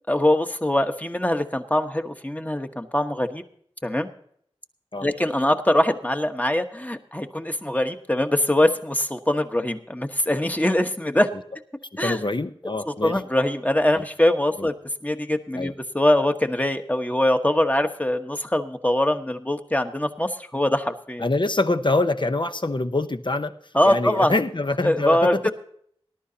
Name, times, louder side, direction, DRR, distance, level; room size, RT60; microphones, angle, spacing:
voice 1, 0.1-3.4 3.8-4.1 5.0-11.3 12.0-12.2 12.9-14.7 15.0-21.2 23.7-24.3 24.8-25.5, left 1 dB, 15° left, 6 dB, 1.2 m, -23 dB
voice 2, 12.0-13.2 13.9-14.0 14.6-14.7 15.5-15.7 21.2-23.5 23.8-25.5, left 2 dB, 50° left, 9 dB, 0.8 m, -25 dB
19.5 x 11.5 x 2.8 m, 0.64 s
wide cardioid pair, 50°, 10 cm